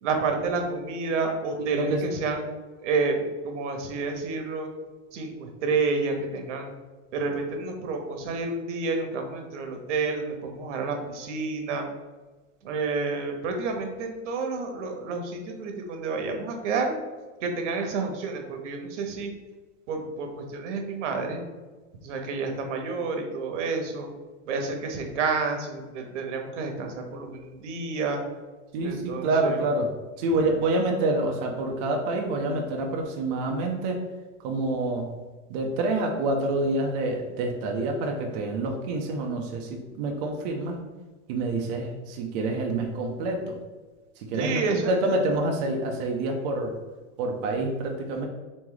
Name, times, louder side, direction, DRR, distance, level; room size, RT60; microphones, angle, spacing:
voice 1, 0.0-2.4 2.8-4.7 5.1-6.7 7.1-11.9 12.6-17.0 17.4-19.3 19.9-21.4 22.0-24.1 24.5-28.2 28.8-29.6 44.4-44.9, right 4 dB, 75° right, 4 dB, 1.0 m, -29 dB
voice 2, 1.6-2.0 28.7-29.9 30.2-34.0 34.4-35.2 35.5-40.8 41.3-43.6 44.2-46.8 47.2-48.3, right 2 dB, 35° right, 1 dB, 0.4 m, -27 dB
3.9 x 3.1 x 3.8 m, 1.3 s
supercardioid pair, 165°, 36 cm